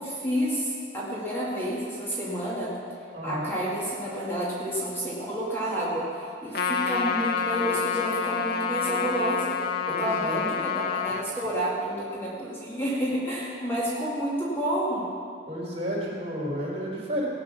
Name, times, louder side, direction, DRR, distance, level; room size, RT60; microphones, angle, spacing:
voice 1, 0.0-2.7 3.2-9.6 9.9-15.0, right 1 dB, 15° left, -7 dB, 2.2 m, -30 dB
voice 2, 3.1-3.5 9.9-10.5 15.5-17.3, equal, 35° right, -6 dB, 4.5 m, -31 dB
Trumpet, 6.5-11.2, left 6 dB, 55° left, 0.8 m, -28 dB
18.5 x 8.2 x 6.3 m, 2.3 s
head